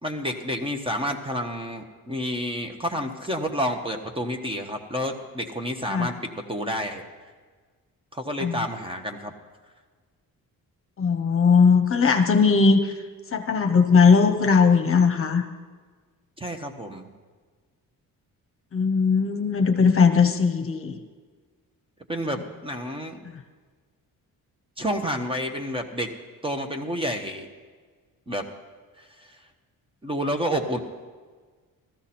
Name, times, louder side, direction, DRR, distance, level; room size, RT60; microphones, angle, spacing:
voice 1, 0.0-7.0 8.1-9.3 16.4-17.1 22.1-23.2 24.8-26.1 26.4-27.5 28.3-28.4 30.0-30.8, equal, 15° right, 5 dB, 1.1 m, -29 dB
voice 2, 11.0-12.9 13.3-15.4 18.7-21.0, left 5 dB, 40° left, 6 dB, 1.0 m, -19 dB
14.5 x 13.5 x 4.3 m, 1.5 s
cardioid pair, 110°, 34 cm